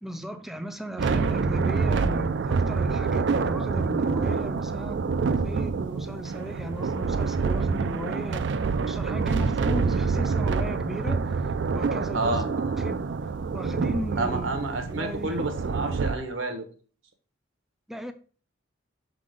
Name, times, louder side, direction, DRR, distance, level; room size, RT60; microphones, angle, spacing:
voice 1, 0.0-8.5 8.8-11.3 11.7-12.5 12.8-13.0 13.5-14.6 14.9-15.4 17.9-18.1, equal, ahead, 0.5 m, -36 dB
sound 1, 1.0-16.1, right 4 dB, 65° right, 0.4 m, -27 dB
voice 2, 12.1-12.7 14.2-16.7, right 2 dB, 85° right, 1.2 m, -30 dB
6.0 x 3.8 x 5.0 m
head